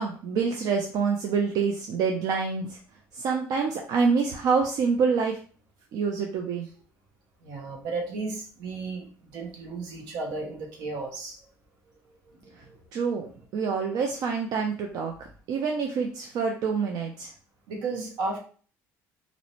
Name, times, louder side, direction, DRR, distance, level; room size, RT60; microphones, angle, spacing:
voice 1, 0.0-2.8 3.1-5.4 5.9-6.7 12.6-12.7 12.9-15.1 15.5-17.3, right 5 dB, 65° right, 1 dB, 0.4 m, -26 dB
voice 2, 7.4-11.4 12.3-12.4 12.6-12.8 17.7-18.4, right 3 dB, 80° right, 1 dB, 0.8 m, -34 dB
2.5 x 2.1 x 2.9 m, 0.42 s
supercardioid pair, 85°, 7 cm